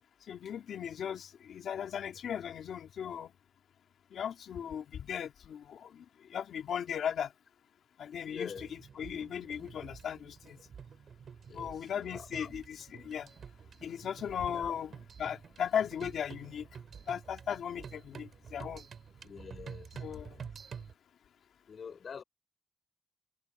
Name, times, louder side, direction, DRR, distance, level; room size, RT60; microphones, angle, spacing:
voice 1, 0.3-3.3 4.1-6.0 6.3-7.3 8.0-10.6 11.5-13.3 13.8-14.9 15.2-16.7 17.1-18.8 19.9-20.5, left 8 dB, 75° left, 2.3 m, -37 dB
voice 2, 8.2-8.7 11.5-11.7 12.1-12.5 14.5-14.8 19.2-19.9 20.2-20.3 21.7-22.2, left 6 dB, 45° left, 5.3 m, -45 dB
sound 1, 8.5-20.9, right 7 dB, 50° right, 4.2 m, -49 dB
wide cardioid pair, 155°, 0 cm